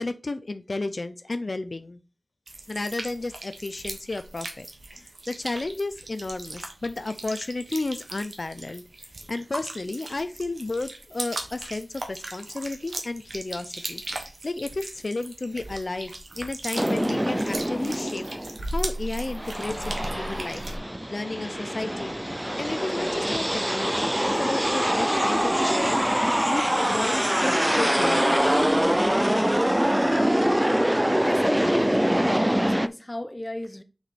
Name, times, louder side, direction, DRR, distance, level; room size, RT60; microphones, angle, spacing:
voice 1, 0.0-2.0 2.7-4.7 4.9-8.8 9.3-16.1 16.4-20.6 21.1-22.2 22.6-26.0 26.5-28.5, left 2 dB, 65° left, 0.5 m, -32 dB
sound 1, 2.5-20.8, right 2 dB, 85° right, 1.2 m, -37 dB
sound 2, 16.8-18.6 19.1-32.9, equal, 10° right, 0.4 m, -24 dB
voice 2, 31.2-33.8, left 1 dB, 25° left, 0.7 m, -34 dB
6.1 x 4.9 x 4.2 m
wide cardioid pair, 55°, 0 cm